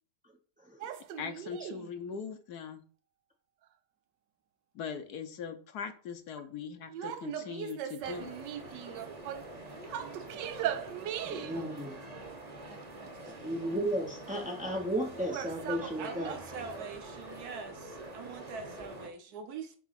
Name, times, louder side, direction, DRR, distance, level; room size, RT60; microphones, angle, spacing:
sound 1, 0.8-1.9 6.9-9.5 9.9-11.7 15.2-16.9, right 10 dB, 85° right, 1.3 m, -39 dB
voice 1, 1.2-2.8 4.7-8.3, left 6 dB, 70° left, 1.3 m, -40 dB
sound 2, 8.0-19.1, right 2 dB, 30° right, 0.9 m, -46 dB
voice 2, 10.1-11.6 12.1-12.3 12.6-13.5 16.0-19.8, right 5 dB, 65° right, 1.4 m, -45 dB
voice 3, 11.3-12.0 13.4-16.3, equal, 10° right, 0.3 m, -34 dB
7.0 x 3.0 x 5.8 m
omnidirectional pair, 1.8 m